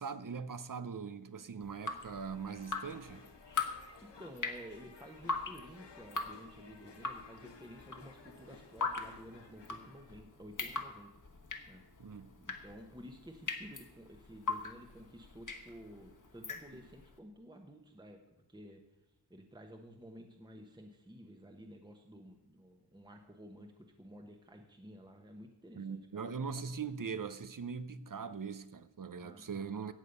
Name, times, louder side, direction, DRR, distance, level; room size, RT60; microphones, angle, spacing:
voice 1, 0.0-3.3 12.0-12.4 25.7-29.9, right 5 dB, 50° right, 0.7 m, -41 dB
Drip, 1.6-17.1, left 4 dB, 45° left, 1.4 m, -41 dB
sound 1, 2.1-10.2, left 4 dB, 80° left, 1.5 m, -57 dB
voice 2, 4.0-11.1 11.7-11.8 12.4-18.2 18.5-18.8 19.3-26.3 29.2-29.9, equal, 10° right, 1.1 m, -53 dB
15.0 x 8.4 x 5.4 m
wide cardioid pair, 90°, 42 cm